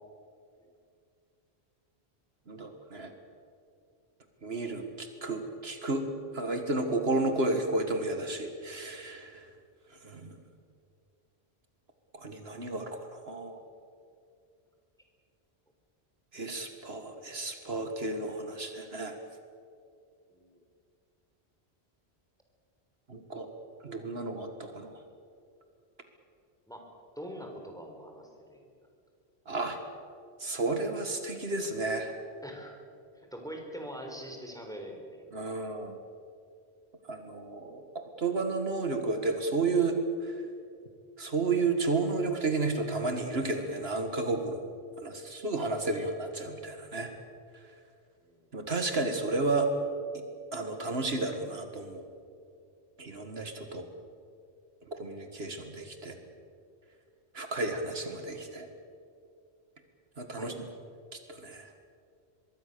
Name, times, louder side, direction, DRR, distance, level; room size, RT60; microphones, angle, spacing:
voice 1, 2.5-3.1 4.4-6.1 6.3-9.4 10.0-10.4 12.1-13.6 16.3-19.2 23.1-23.5 23.8-24.9 29.5-29.8 30.4-32.1 35.3-36.0 37.1-40.4 41.2-44.7 45.0-47.1 48.5-49.7 50.5-52.1 53.0-53.9 54.9-56.2 57.3-58.7 60.2-60.5 61.3-61.7, right 3 dB, 70° right, 6 dB, 2.1 m, -32 dB
voice 2, 27.2-28.7 32.4-32.8 33.2-35.2 48.3-48.5 60.4-60.6, equal, 5° left, 2 dB, 3.9 m, -43 dB
24.5 x 22.5 x 6.9 m, 2.4 s
omnidirectional pair, 1.1 m